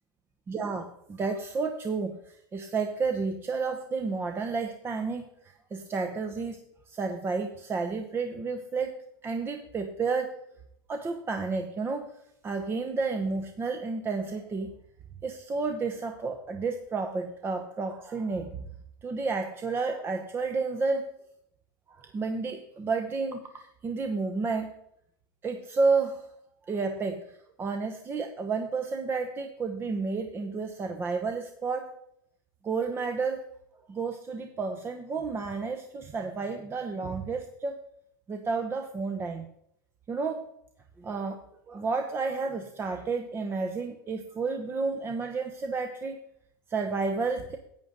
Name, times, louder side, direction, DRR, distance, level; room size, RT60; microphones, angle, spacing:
voice 1, 0.5-6.6 6.9-9.0 9.2-10.3 10.9-12.1 12.4-14.7 15.2-18.6 19.0-21.0 21.9-24.7 25.4-26.3 26.7-31.9 32.6-33.4 33.9-37.8 38.3-39.5 40.1-40.5 41.0-46.2 46.7-47.6, right 4 dB, 20° right, 6 dB, 0.9 m, -31 dB
10.5 x 8.8 x 3.9 m, 0.72 s
hypercardioid pair, 120°, 11 cm